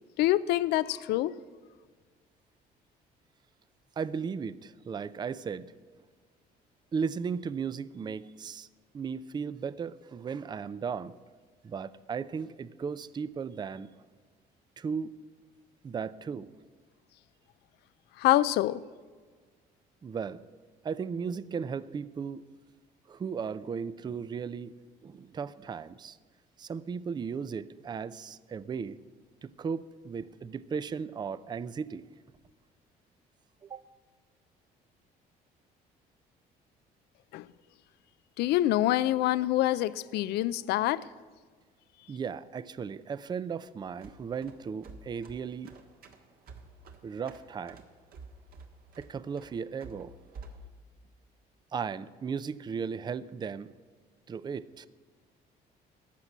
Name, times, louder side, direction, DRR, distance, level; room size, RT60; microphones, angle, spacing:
voice 1, 0.2-1.3 18.2-18.8 37.3-37.5 38.4-41.1, left 15 dB, 75° left, 17 dB, 0.4 m, -26 dB
voice 2, 4.0-5.7 6.9-8.7 8.9-11.1 11.6-13.9 14.8-15.2 15.8-16.5 20.0-20.4 20.8-22.5 23.1-24.7 25.0-26.2 26.6-29.0 29.4-32.1 33.6-33.9 42.1-45.7 47.0-47.8 49.0-50.2 51.7-53.7 54.3-54.9, right 6 dB, 25° right, 17 dB, 0.4 m, -36 dB
sound 1, 43.9-50.7, right 3 dB, 60° right, 1.7 m, -50 dB
14.5 x 6.0 x 9.9 m, 1.5 s
cardioid pair, 110°, 17 cm